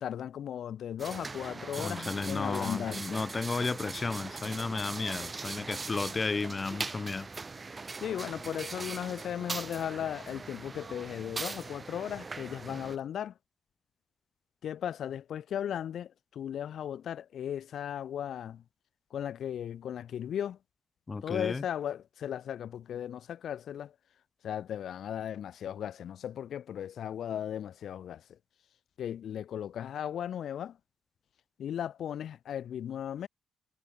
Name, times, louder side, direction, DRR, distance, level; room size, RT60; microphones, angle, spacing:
voice 1, 0.0-3.2 8.0-13.3 14.6-18.6 19.1-20.6 21.2-23.9 24.4-28.4 29.0-30.8 31.6-33.3, left 9 dB, 75° left, 1.7 m, -36 dB
sound 1, 1.0-13.0, right 4 dB, 30° right, 7.7 m, -40 dB
voice 2, 1.8-7.3 21.1-21.6, left 4 dB, 30° left, 1.8 m, -33 dB
cardioid pair, 80°, 0 cm